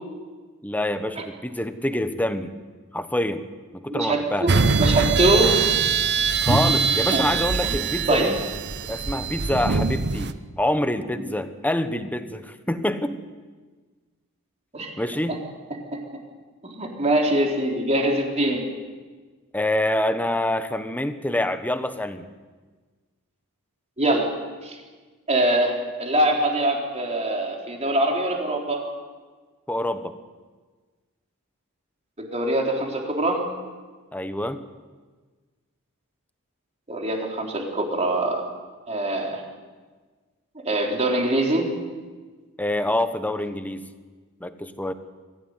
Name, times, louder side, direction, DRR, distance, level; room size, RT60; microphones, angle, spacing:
voice 1, 0.6-2.5 2.9-3.4 3.7-4.5 6.4-8.4 8.9-13.2 15.0-15.4 19.5-22.3 29.7-30.1 34.1-34.6 42.6-43.8 44.4-44.9, left 1 dB, 5° left, 10 dB, 1.1 m, -26 dB
voice 2, 3.9-4.5 4.8-5.5 6.5-6.6 6.9-7.2 7.6-7.8 8.1-8.3 14.7-14.9 15.3-15.4 15.9-16.2 16.6-18.6 24.0-24.3 24.6-24.8 25.3-28.9 32.2-33.5 36.9-38.4 38.9-39.4 40.6-41.7, right 1 dB, 30° right, 1 dB, 4.0 m, -23 dB
sound 1, 4.5-10.3, right 5 dB, 50° right, 0.9 m, -23 dB
24.0 x 16.0 x 9.7 m, 1.4 s
head